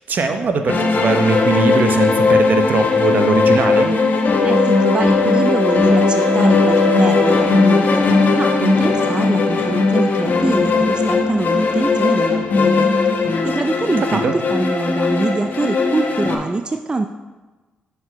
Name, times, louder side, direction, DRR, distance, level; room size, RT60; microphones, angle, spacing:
voice 1, 0.0-3.9 14.1-14.4, right 5 dB, 55° right, 6 dB, 0.8 m, -20 dB
sound 1, 0.7-16.4, left 3 dB, 55° left, 1.0 m, -17 dB
voice 2, 4.4-8.0 8.4-12.9 13.4-17.1, right 3 dB, 25° right, 6 dB, 0.4 m, -24 dB
6.3 x 4.8 x 4.5 m, 1.3 s
supercardioid pair, 60°, 4 cm